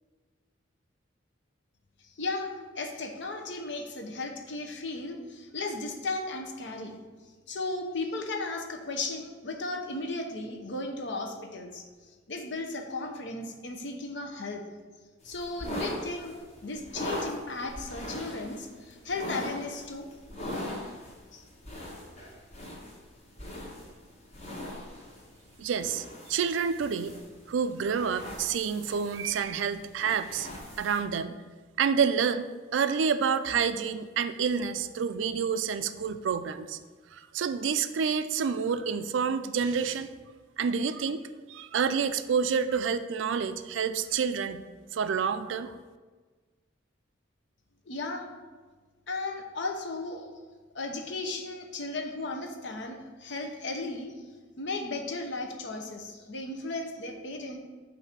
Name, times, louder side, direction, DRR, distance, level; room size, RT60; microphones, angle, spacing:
voice 1, 2.0-7.0 7.5-11.8 12.3-14.6 15.2-20.1 21.3-21.4 47.9-48.3 49.1-50.2 50.7-54.1 54.6-57.6, left 2 dB, 65° left, 3 dB, 0.8 m, -35 dB
sound 1, 15.2-31.0, left 1 dB, 35° left, 1.3 m, -41 dB
voice 2, 25.6-27.1 27.5-30.5 30.8-31.4 31.8-32.5 32.7-36.8 37.1-40.1 40.6-41.2 41.5-44.6 44.9-45.7, right 6 dB, 75° right, 11 dB, 0.4 m, -28 dB
7.8 x 2.7 x 5.8 m, 1.4 s
head